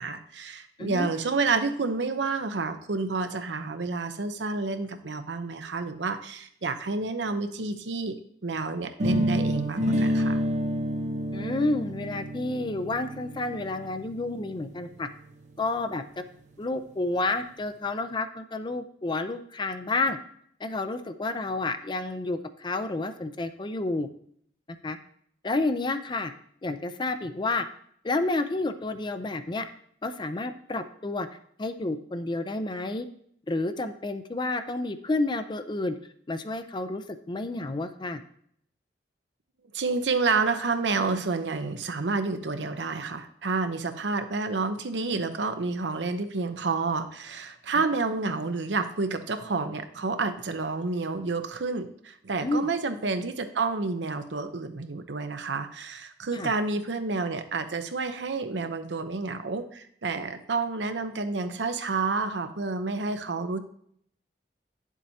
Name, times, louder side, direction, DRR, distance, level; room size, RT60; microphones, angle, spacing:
voice 1, 0.0-8.2 8.4-10.4 39.7-63.6, right 4 dB, 80° right, 8 dB, 0.8 m, -29 dB
sound 1, 9.0-14.9, equal, 45° right, 0.9 m, -28 dB
voice 2, 11.3-15.1 15.6-16.2 16.6-20.2 20.6-24.1 24.8-25.0 25.4-26.3 26.6-27.7 28.0-29.7 30.0-31.3 31.6-33.1 33.5-36.0 36.3-38.2 52.4-52.7 56.3-56.5, left 2 dB, 25° left, 10 dB, 0.5 m, -30 dB
9.9 x 7.3 x 2.8 m, 0.66 s
head